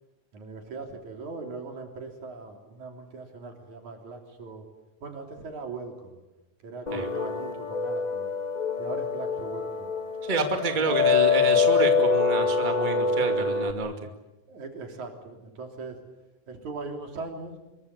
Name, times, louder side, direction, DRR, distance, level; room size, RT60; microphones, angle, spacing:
voice 1, 0.3-4.6 5.0-6.2 6.6-8.3 8.8-9.9 10.9-11.1 14.5-16.0 16.5-17.6, right 3 dB, 75° right, 3 dB, 4.8 m, -39 dB
sound 1, 6.9-13.7, left 4 dB, 40° left, 0.6 m, -25 dB
voice 2, 10.2-13.9, right 3 dB, 15° right, 5 dB, 2.3 m, -29 dB
25.5 x 22.5 x 8.4 m, 1.0 s
omnidirectional pair, 3.4 m